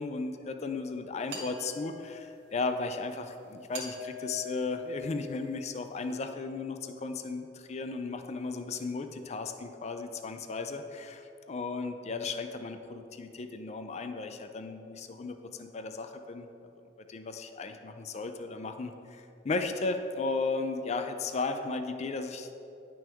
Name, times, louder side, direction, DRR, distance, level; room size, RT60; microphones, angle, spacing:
voice 1, 0.0-16.5 17.1-22.5, left 3 dB, 40° left, 7 dB, 0.4 m, -35 dB
sound 1, 1.3-2.4 3.7-5.6, left 2 dB, 70° right, 1.6 m, -43 dB
9.6 x 6.1 x 3.5 m, 2.8 s
head